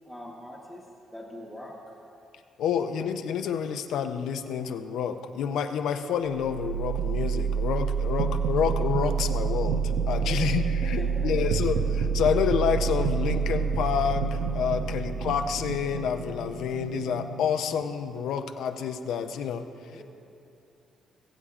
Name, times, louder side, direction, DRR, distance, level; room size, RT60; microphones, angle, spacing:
voice 1, 0.0-1.8 10.2-10.5 10.8-11.7 19.9-20.0, left 1 dB, 5° left, -3 dB, 1.2 m, -43 dB
voice 2, 2.6-19.7, left 7 dB, 80° left, 7 dB, 0.5 m, -28 dB
sound 1, 6.3-18.2, right 6 dB, 85° right, 0.7 m, -28 dB
21.0 x 8.4 x 2.4 m, 2.8 s
cardioid pair, 90°, 0 cm